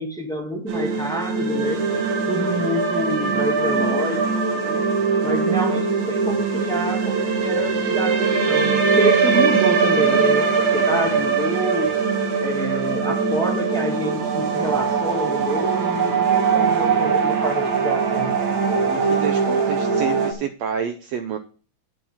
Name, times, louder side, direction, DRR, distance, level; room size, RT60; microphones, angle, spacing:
voice 1, 0.0-1.8 2.3-4.8 5.2-11.9 12.4-18.3, equal, 5° left, 1 dB, 0.6 m, -27 dB
sound 1, 0.7-20.3, right 5 dB, 60° right, 2.7 m, -21 dB
voice 2, 18.9-21.4, right 8 dB, 80° right, 8 dB, 1.5 m, -28 dB
8.4 x 6.3 x 7.1 m, 0.38 s
omnidirectional pair, 3.8 m